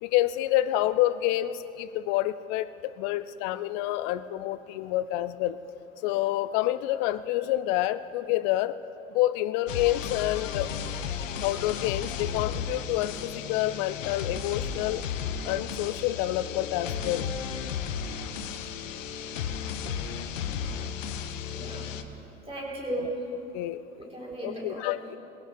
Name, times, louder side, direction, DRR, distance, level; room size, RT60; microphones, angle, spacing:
voice 1, 0.0-5.6 6.0-8.8 9.1-10.7 11.4-15.0 15.4-17.3 22.9-23.1 23.5-23.8 24.4-25.2, left 14 dB, 35° left, 14 dB, 0.4 m, -28 dB
sound 1, 9.7-22.0, left 7 dB, 70° left, 0.9 m, -34 dB
voice 2, 21.5-21.9 22.5-23.2 24.0-24.9, right 2 dB, 15° right, -3 dB, 3.7 m, -36 dB
19.5 x 16.5 x 3.3 m, 2.9 s
figure-of-eight pair, 85°, 40 cm